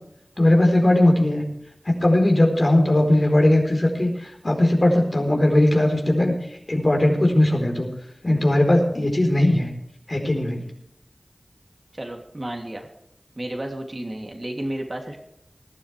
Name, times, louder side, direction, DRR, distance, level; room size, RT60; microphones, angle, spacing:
voice 1, 0.4-1.4 1.9-6.3 6.7-7.9 8.2-9.7 10.1-10.6, left 1 dB, 55° left, 2 dB, 4.3 m, -19 dB
voice 2, 11.9-12.9 13.4-15.2, right 1 dB, 45° right, 2 dB, 3.0 m, -32 dB
20.0 x 12.5 x 3.4 m, 0.79 s
wide cardioid pair, 45°, 0 cm